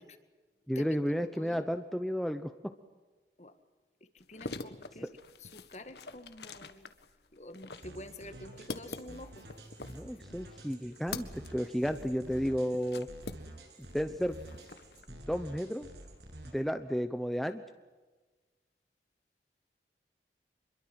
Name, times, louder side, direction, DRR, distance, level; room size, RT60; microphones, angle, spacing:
voice 1, 0.7-2.5 5.0-5.1 9.8-13.1 13.9-14.4 15.1-15.9 16.5-17.6, equal, ahead, 8 dB, 0.9 m, -32 dB
sound 1, 4.2-13.9 14.2-15.1, left 3 dB, 75° left, 1.7 m, -45 dB
voice 2, 4.3-5.1 5.5-6.7 7.4-9.3, left 1 dB, 40° left, 10 dB, 1.9 m, -47 dB
sound 2, 7.7-16.5, right 1 dB, 75° right, 8.0 m, -50 dB
26.5 x 23.0 x 7.8 m, 1.3 s
head